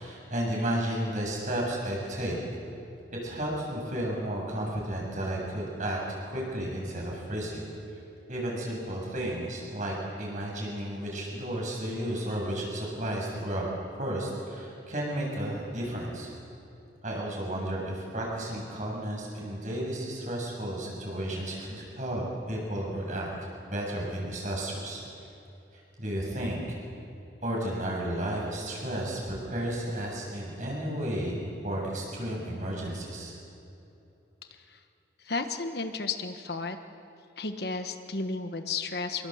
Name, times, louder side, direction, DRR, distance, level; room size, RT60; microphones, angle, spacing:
voice 1, 0.0-2.4 3.2-7.6 8.3-13.7 14.0-16.3 17.0-23.3 23.7-25.0 26.0-26.8 27.4-33.3, right 1 dB, 40° right, -2 dB, 7.4 m, -33 dB
voice 2, 35.2-36.8 37.4-39.3, left 4 dB, 60° left, 7 dB, 1.4 m, -33 dB
26.0 x 22.5 x 8.0 m, 2.8 s
head